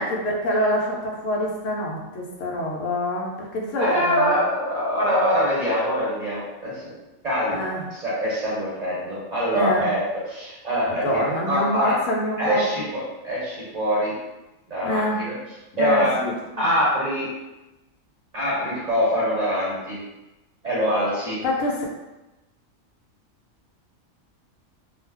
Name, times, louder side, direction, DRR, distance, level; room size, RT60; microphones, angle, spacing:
voice 1, 0.0-4.3 7.5-7.8 9.5-9.9 11.0-12.6 14.8-15.2 15.7-16.7 21.4-21.9, left 1 dB, 80° left, -1 dB, 1.0 m, -26 dB
voice 2, 3.8-6.9 7.2-12.0 12.4-14.2 14.7-15.4 15.8-16.3 16.6-17.3 18.3-20.0 20.6-21.4, equal, 40° right, -7 dB, 0.7 m, -24 dB
2.3 x 2.3 x 3.3 m, 1.0 s
omnidirectional pair, 1.3 m